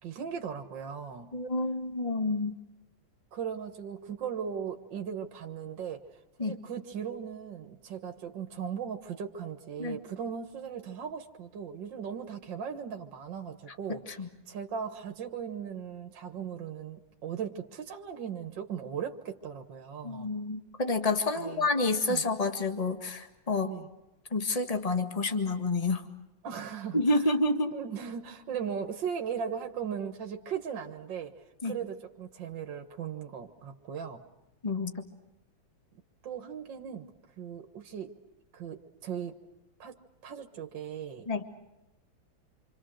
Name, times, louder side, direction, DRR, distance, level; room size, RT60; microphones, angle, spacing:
voice 1, 0.0-1.3 3.3-6.0 6.4-20.3 21.3-21.7 22.1-22.2 23.7-23.9 26.4-27.0 27.7-31.3 31.6-34.2 36.2-37.1 37.4-38.2 38.5-39.4 39.8-40.0 40.2-41.3, right 7 dB, 70° right, 5 dB, 2.1 m, -38 dB
voice 2, 1.3-2.6 6.4-6.6 9.8-10.0 13.9-14.3 20.0-23.7 24.3-26.0 26.9-27.7 31.6-31.7 34.6-35.0 41.3-41.4, left 2 dB, 20° left, 6 dB, 1.8 m, -29 dB
27.5 x 26.5 x 6.5 m, 0.94 s
omnidirectional pair, 2.1 m